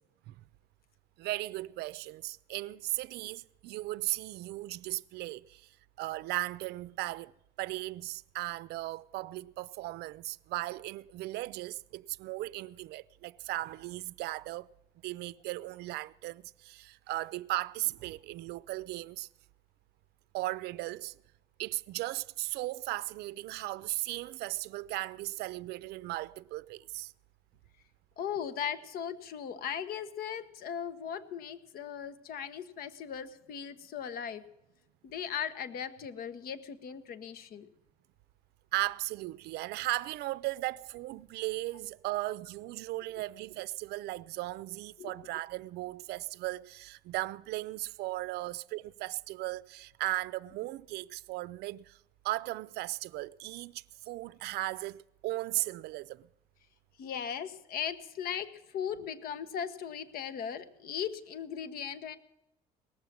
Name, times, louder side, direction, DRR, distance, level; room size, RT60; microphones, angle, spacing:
voice 1, 1.2-5.7 6.0-7.3 7.6-14.7 15.0-19.3 20.3-21.2 21.6-27.1 38.7-52.0 52.2-56.3, right 18 dB, 80° right, 0.4 m, -37 dB
voice 2, 28.2-34.4 35.0-37.7 45.0-45.1 57.0-62.2, left 8 dB, 65° left, 1.2 m, -38 dB
18.5 x 7.3 x 9.3 m
cardioid pair, 125°, 17 cm